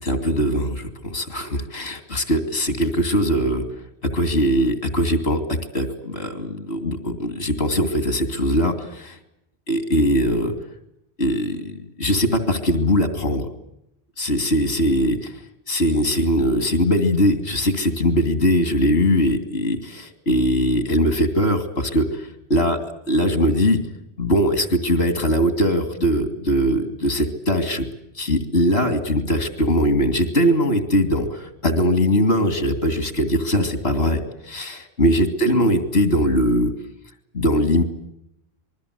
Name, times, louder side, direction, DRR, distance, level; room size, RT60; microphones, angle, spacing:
voice 1, 0.0-3.7 4.0-9.2 9.7-10.5 11.2-13.5 14.2-15.3 15.7-22.8 23.1-23.8 24.2-27.9 28.1-36.7 37.3-37.8, equal, 85° left, 9 dB, 2.9 m, -21 dB
27.0 x 21.0 x 8.2 m, 0.80 s
omnidirectional pair, 1.1 m